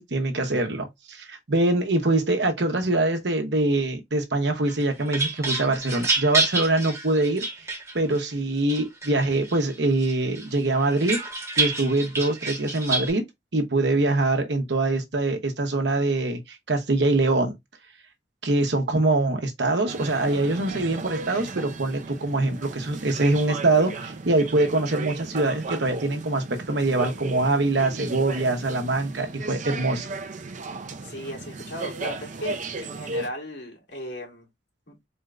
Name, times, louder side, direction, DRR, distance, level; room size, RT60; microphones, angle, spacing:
voice 1, 0.0-7.4 7.9-11.2 11.6-13.3 13.5-16.4 16.7-17.5 18.4-30.1, right 2 dB, 75° right, 1.0 m, -24 dB
sound 1, 4.7-8.2 8.7-9.6 10.0-13.1, right 3 dB, 15° right, 1.0 m, -28 dB
sound 2, 19.9-33.3, right 3 dB, 45° right, 0.5 m, -35 dB
voice 2, 31.0-34.5 34.9-35.0, equal, 85° left, 2.4 m, -36 dB
4.4 x 2.5 x 3.2 m
head